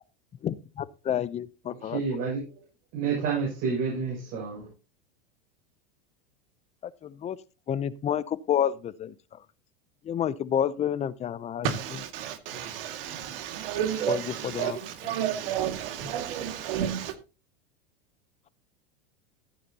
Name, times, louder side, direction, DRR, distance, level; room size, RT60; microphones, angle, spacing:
voice 1, 0.4-2.0 7.0-7.4 7.7-9.1 10.0-11.7 14.1-14.2 14.5-14.8, left 9 dB, 25° left, 0.6 m, -29 dB
voice 2, 1.7-2.4 2.9-4.7, right 5 dB, 50° right, 6.9 m, -29 dB
voice 3, 11.6-17.1, right 9 dB, 70° right, 2.2 m, -31 dB
14.5 x 9.3 x 2.9 m
supercardioid pair, 125°, 29 cm